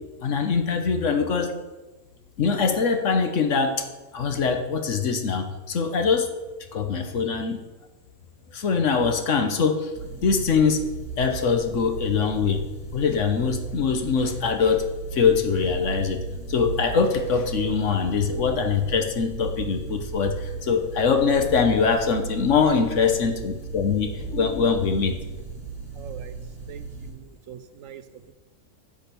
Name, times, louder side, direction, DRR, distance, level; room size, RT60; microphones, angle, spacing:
voice 1, 0.2-1.5 2.4-3.9 4.1-6.3 6.7-7.6 8.5-9.9 10.2-10.8 11.2-12.6 12.9-14.8 15.1-16.2 16.5-25.1, left 5 dB, 60° left, 6 dB, 1.3 m, -23 dB
sound 1, 9.9-27.1, right 4 dB, 5° right, 4.1 m, -36 dB
voice 2, 25.9-26.4 26.7-28.3, right 9 dB, 70° right, 11 dB, 1.0 m, -43 dB
10.5 x 6.5 x 6.8 m, 1.2 s
omnidirectional pair, 1.5 m